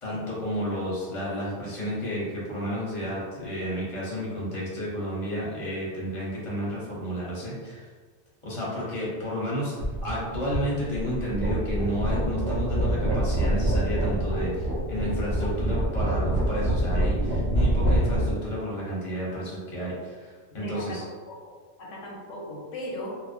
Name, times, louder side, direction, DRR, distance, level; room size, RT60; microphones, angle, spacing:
voice 1, 0.0-7.9 8.4-21.0, equal, 30° left, -6 dB, 0.7 m, -31 dB
sound 1, 9.8-18.3, right 1 dB, 75° right, 0.9 m, -26 dB
voice 2, 20.6-21.5 21.8-23.2, left 1 dB, 85° left, -3 dB, 1.0 m, -38 dB
2.4 x 2.1 x 2.4 m, 1.5 s
omnidirectional pair, 1.2 m